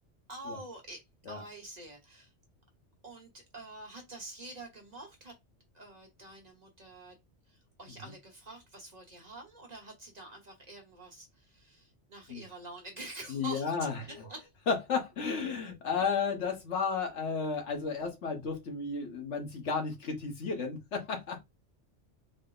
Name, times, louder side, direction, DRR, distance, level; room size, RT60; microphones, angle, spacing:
voice 1, 0.3-1.0 1.3-2.3 3.0-5.3 5.7-7.1 7.8-11.3 11.6-11.8 12.1-13.6 14.3-14.4, right 2 dB, 40° right, 1.1 m, -46 dB
voice 2, 13.3-14.3 14.7-21.4, left 5 dB, 75° left, 1.4 m, -33 dB
4.0 x 2.1 x 3.8 m
omnidirectional pair, 1.2 m